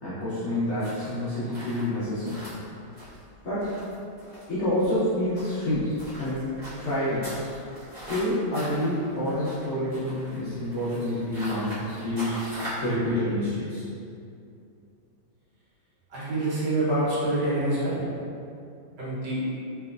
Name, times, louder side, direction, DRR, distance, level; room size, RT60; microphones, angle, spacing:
voice 1, 0.0-2.4 3.4-3.7 4.5-6.5 6.8-7.3 8.1-13.9, left 1 dB, 65° left, -12 dB, 0.7 m, -28 dB
sound 1, 0.8-12.9, equal, 25° right, 1.0 m, -41 dB
voice 2, 16.1-18.0 19.0-19.4, right 1 dB, 65° right, -9 dB, 1.6 m, -26 dB
3.4 x 3.0 x 2.4 m, 2.5 s
omnidirectional pair, 2.2 m